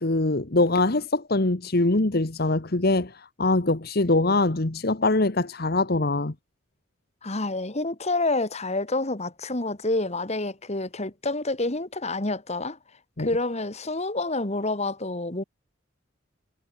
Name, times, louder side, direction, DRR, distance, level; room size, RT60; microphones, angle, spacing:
voice 1, 0.0-3.1 3.4-6.3 13.2-13.3, left 2 dB, 55° left, 1.4 m, -23 dB
voice 2, 7.2-12.8 13.2-15.4, left 2 dB, 35° left, 2.3 m, -28 dB
head